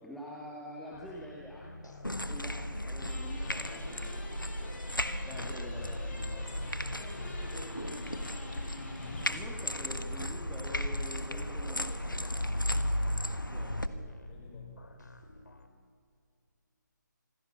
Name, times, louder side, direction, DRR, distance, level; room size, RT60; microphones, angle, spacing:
voice 1, 0.0-2.0 2.2-4.1 5.3-6.5 9.2-11.9 13.5-14.0, equal, ahead, -4 dB, 1.5 m, -46 dB
sound 1, 0.9-15.7, left 3 dB, 65° left, 2.6 m, -51 dB
sound 2, 2.0-13.9, left 1 dB, 90° left, 1.4 m, -35 dB
sound 3, 3.0-9.4, left 2 dB, 50° left, 7.7 m, -48 dB
voice 2, 3.4-5.0 6.7-8.2 8.9-9.5 9.9-10.1 11.0-12.7 14.3-14.8, left 3 dB, 20° left, 1 dB, 4.8 m, -55 dB
26.5 x 16.0 x 7.3 m, 2.2 s
figure-of-eight pair, 145°, 11 cm